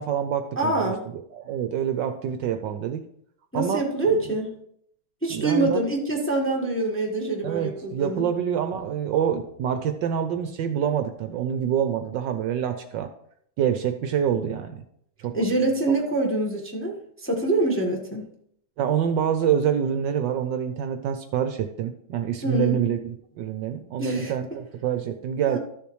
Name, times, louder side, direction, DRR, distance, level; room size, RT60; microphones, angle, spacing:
voice 1, 0.0-3.0 3.5-3.8 4.1-4.2 5.3-5.8 7.4-13.1 13.6-14.8 15.2-15.4 18.8-25.6, right 8 dB, 70° right, 8 dB, 1.2 m, -26 dB
voice 2, 0.6-1.0 3.5-4.6 5.2-8.2 15.3-18.3 22.4-22.8 24.0-24.3 25.4-25.6, right 2 dB, 10° left, 0 dB, 1.0 m, -25 dB
13.0 x 6.9 x 3.1 m, 0.69 s
omnidirectional pair, 2.2 m